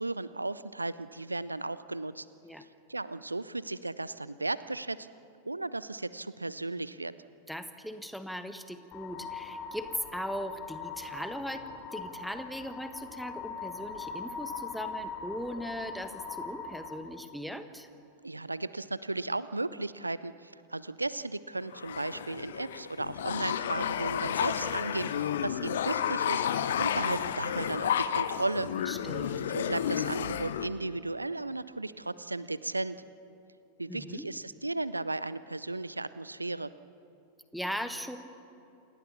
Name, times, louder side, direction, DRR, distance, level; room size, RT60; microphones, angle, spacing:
voice 1, 0.0-2.3 2.6-5.1 5.4-7.1 18.2-28.7 29.5-33.0 33.8-36.7, right 2 dB, 85° right, 16 dB, 0.6 m, -35 dB
voice 2, 7.5-11.6 11.9-17.9 28.9-29.5 33.9-34.3 37.5-38.2, equal, ahead, 9 dB, 1.5 m, -39 dB
sound 1, 8.9-17.0, left 5 dB, 35° left, 2.6 m, -41 dB
sound 2, 21.7-30.7, left 9 dB, 60° left, 1.0 m, -31 dB
28.0 x 19.5 x 7.0 m, 2.7 s
figure-of-eight pair, 90°, 0 cm